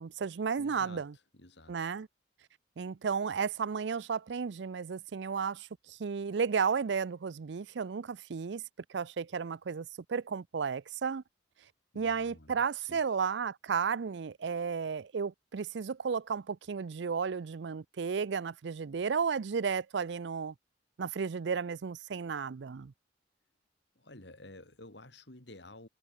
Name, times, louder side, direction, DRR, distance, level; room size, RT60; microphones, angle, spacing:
voice 1, 0.0-1.1 1.7-2.1 2.8-8.6 8.9-11.2 11.9-20.5 21.0-22.9, right 6 dB, 70° right, 0.5 m, -33 dB
voice 2, 0.6-1.1 1.3-1.8 11.9-13.0 24.0-25.9, left 2 dB, 70° left, 3.8 m, -52 dB
head